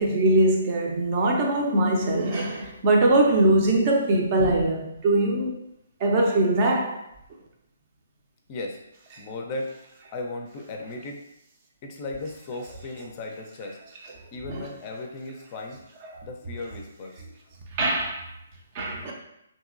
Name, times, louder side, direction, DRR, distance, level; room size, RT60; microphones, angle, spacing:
voice 1, 0.0-5.5 6.0-7.0 14.5-14.6 16.1-16.2 17.8-18.3 18.7-19.1, right 2 dB, 35° right, 0.5 m, -22 dB
voice 2, 9.2-9.7 10.1-11.2 11.8-13.8 14.3-15.8 16.2-17.2, left 2 dB, 30° left, 0.4 m, -36 dB
2.9 x 2.7 x 2.5 m
figure-of-eight pair, 135°, 0 cm